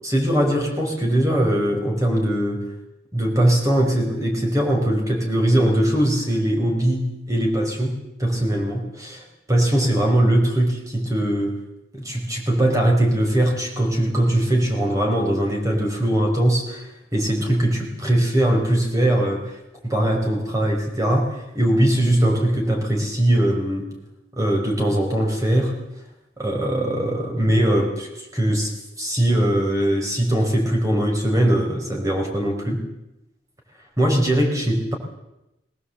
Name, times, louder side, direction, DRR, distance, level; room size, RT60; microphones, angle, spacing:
voice 1, 0.0-2.7 3.1-11.6 11.9-23.8 24.4-25.7 26.4-32.8 34.0-34.9, right 1 dB, 20° right, 1 dB, 4.9 m, -21 dB
20.5 x 19.0 x 8.0 m, 0.91 s
head